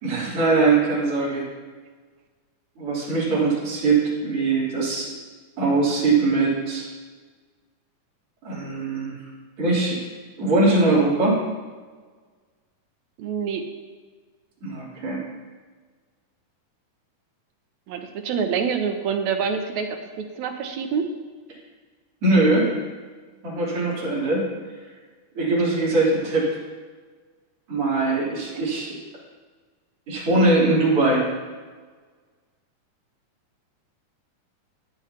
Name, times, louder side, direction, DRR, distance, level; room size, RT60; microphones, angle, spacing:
voice 1, 0.0-1.4 2.8-5.1 5.6-6.9 8.4-9.2 9.6-10.0 10.4-11.4 14.6-15.2 22.2-22.7 23.4-24.5 25.3-26.5 27.7-28.9 30.1-31.3, right 3 dB, 45° right, -8 dB, 4.2 m, -21 dB
voice 2, 13.2-13.6 17.9-21.1, right 6 dB, 70° right, 5 dB, 2.0 m, -26 dB
14.0 x 10.5 x 2.9 m, 1.4 s
omnidirectional pair, 3.6 m